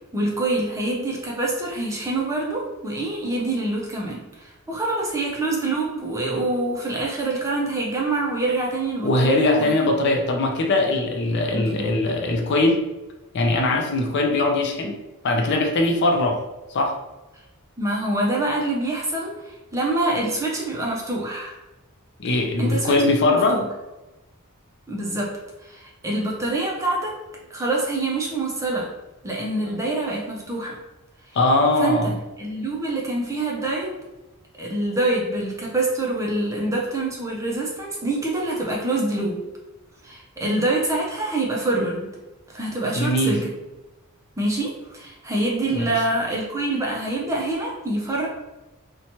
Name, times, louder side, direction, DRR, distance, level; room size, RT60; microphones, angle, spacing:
voice 1, 0.1-9.7 11.5-11.9 17.8-21.6 22.6-23.0 23.3-23.6 24.9-25.3 25.6-27.1 27.5-28.9 29.2-30.8 31.8-34.0 34.6-39.4 40.0-42.1 42.5-43.5 44.4-48.3, right 2 dB, 15° right, -2 dB, 0.5 m, -25 dB
voice 2, 9.0-12.8 13.3-15.0 15.2-16.4 16.7-17.0 22.2-23.6 31.3-32.1 42.9-43.4 45.7-45.9, left 2 dB, 50° left, 3 dB, 0.4 m, -21 dB
2.7 x 2.2 x 2.9 m, 1.1 s
head